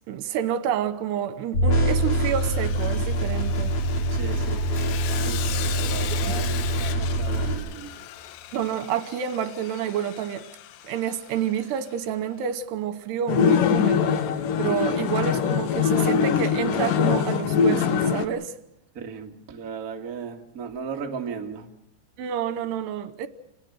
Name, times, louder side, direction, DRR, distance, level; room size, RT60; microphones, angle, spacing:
voice 1, 0.1-3.8 6.1-6.4 8.5-10.5 10.8-14.2 14.6-18.5 22.2-23.3, right 9 dB, 80° right, 3.1 m, -29 dB
sound 1, 1.5-7.5, right 1 dB, 40° left, 4.3 m, -24 dB
Sawing, 1.9-12.1, left 12 dB, 80° left, 3.2 m, -38 dB
voice 2, 4.1-4.7 5.2-8.0 18.9-21.7, right 6 dB, 35° right, 1.4 m, -36 dB
sound 2, 13.3-18.2, left 7 dB, 65° left, 2.5 m, -22 dB
27.5 x 20.0 x 6.4 m
omnidirectional pair, 4.9 m